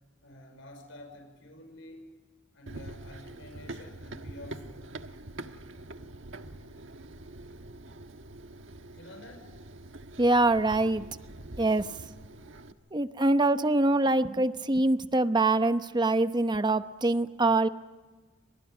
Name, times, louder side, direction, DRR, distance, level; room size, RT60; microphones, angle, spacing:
voice 1, 0.2-2.1 2.5-4.9 8.9-9.5, left 1 dB, 80° left, 4 dB, 5.5 m, -49 dB
Run, 2.7-12.7, right 2 dB, 75° right, 1.3 m, -45 dB
voice 2, 10.2-11.1 11.6-11.9 12.9-17.7, right 2 dB, 20° right, 11 dB, 0.9 m, -24 dB
29.0 x 26.0 x 5.1 m, 1.3 s
head